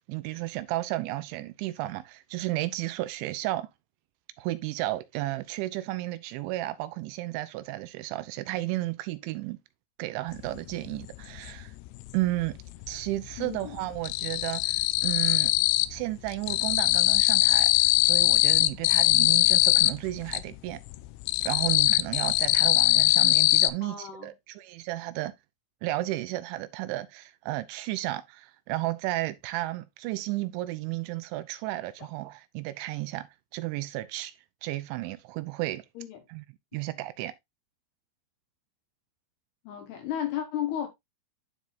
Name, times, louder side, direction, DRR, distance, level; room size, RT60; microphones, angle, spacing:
voice 1, 0.1-3.7 4.4-9.6 10.0-11.7 12.1-12.6 12.9-15.5 15.9-20.8 21.4-25.3 25.8-33.3 33.5-34.3 34.6-35.9 36.3-36.4 36.7-37.3, right 17 dB, 80° right, 2.9 m, -33 dB
sound 1, 10.5-10.6 10.9-12.1 12.4-13.1 13.3-16.0 16.3-20.4 20.9-23.7, left 17 dB, 85° left, 2.6 m, -22 dB
voice 2, 13.4-13.8 23.8-24.3 32.0-32.1 36.0-36.2 39.6-40.9, left 10 dB, 65° left, 3.0 m, -34 dB
12.0 x 4.2 x 2.5 m
omnidirectional pair, 5.5 m